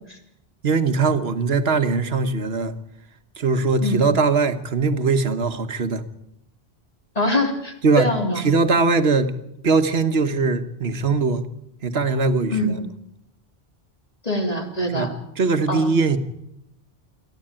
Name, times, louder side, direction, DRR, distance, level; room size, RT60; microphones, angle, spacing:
voice 1, 0.6-2.7 3.4-6.0 7.8-8.1 8.3-9.3 9.6-11.4 11.8-12.8 14.9-16.2, right 4 dB, 70° right, 9 dB, 1.5 m, -21 dB
voice 2, 7.1-8.4 12.5-12.7 14.2-15.1 15.7-15.9, left 1 dB, 35° left, 3 dB, 3.2 m, -23 dB
27.0 x 11.5 x 8.9 m, 0.81 s
omnidirectional pair, 1.1 m